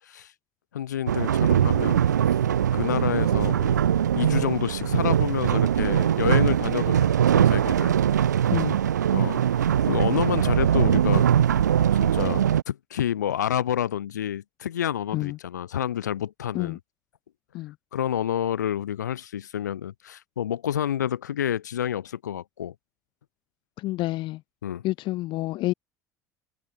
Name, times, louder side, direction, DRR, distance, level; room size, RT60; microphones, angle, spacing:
voice 1, 0.7-2.0 2.7-3.9 4.1-8.0 9.1-11.3 12.0-16.8 17.9-22.7 24.6-24.8, left 10 dB, 85° left, 1.7 m, -29 dB
sound 1, 1.1-12.6, right 9 dB, 85° right, 1.1 m, -21 dB
voice 2, 8.5-8.8 15.1-15.4 16.5-16.8 17.5-17.8 23.8-24.4 24.8-25.7, left 17 dB, 60° left, 5.1 m, -28 dB
hypercardioid pair, 65°, 9 cm